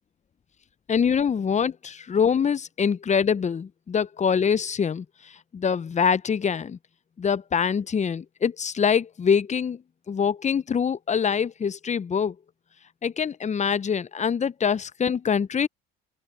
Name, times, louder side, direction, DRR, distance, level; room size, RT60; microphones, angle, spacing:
voice 1, 0.9-6.8 7.2-9.8 10.1-12.4 13.0-15.7, left 7 dB, 25° left, 0.8 m, -24 dB
open air
hypercardioid pair, 75°, 30 cm